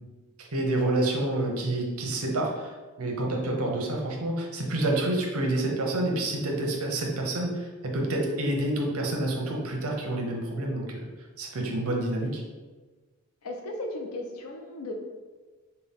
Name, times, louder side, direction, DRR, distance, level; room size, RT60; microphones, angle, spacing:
voice 1, 0.4-2.7 3.0-11.0 11.4-12.4, right 1 dB, 75° right, 1 dB, 0.7 m, -28 dB
voice 2, 13.4-14.9, left 1 dB, 85° left, 3 dB, 0.6 m, -36 dB
5.3 x 2.3 x 3.5 m, 1.3 s
head